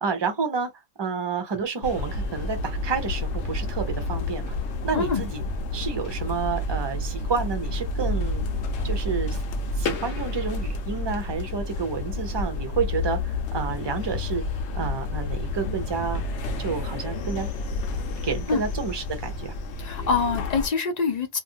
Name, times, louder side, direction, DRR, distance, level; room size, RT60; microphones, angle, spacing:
voice 1, 0.0-0.7 1.0-4.5 4.8-5.4 5.7-8.4 8.8-9.4 9.8-14.4 14.7-16.3 16.6-17.5 18.2-19.6, right 5 dB, 30° right, 0.5 m, -29 dB
sound 1, 1.8-20.7, left 2 dB, 70° left, 0.9 m, -30 dB
voice 2, 4.9-5.2 18.5-18.6 19.8-21.4, left 5 dB, 50° left, 0.5 m, -25 dB
2.6 x 2.5 x 2.7 m
omnidirectional pair, 1.3 m